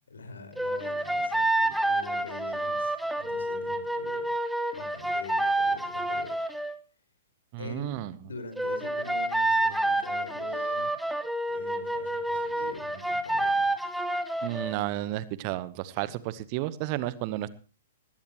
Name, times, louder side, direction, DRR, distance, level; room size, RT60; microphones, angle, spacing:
voice 1, 0.1-4.3 4.7-6.4 7.6-10.9 11.4-13.7 16.0-16.1, left 3 dB, 70° left, 8 dB, 5.0 m, -44 dB
sound 1, 0.6-6.8 8.6-14.8, right 1 dB, ahead, 1.3 m, -28 dB
voice 2, 7.5-8.1 14.4-17.5, right 15 dB, 35° right, 17 dB, 0.9 m, -32 dB
20.0 x 16.0 x 3.0 m, 0.35 s
figure-of-eight pair, 110°, 0 cm